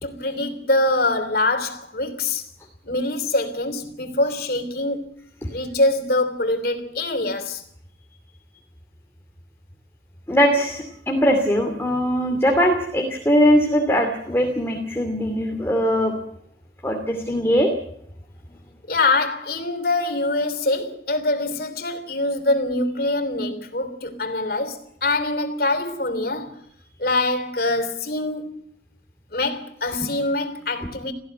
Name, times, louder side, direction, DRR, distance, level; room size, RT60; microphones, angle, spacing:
voice 1, 0.0-2.4 2.8-5.1 5.5-7.6 18.9-26.6 27.0-28.7 29.3-31.1, left 2 dB, 55° left, 3.1 m, -24 dB
voice 2, 10.3-16.1 16.8-17.7, equal, 15° left, 2.6 m, -20 dB
18.5 x 15.0 x 9.3 m
head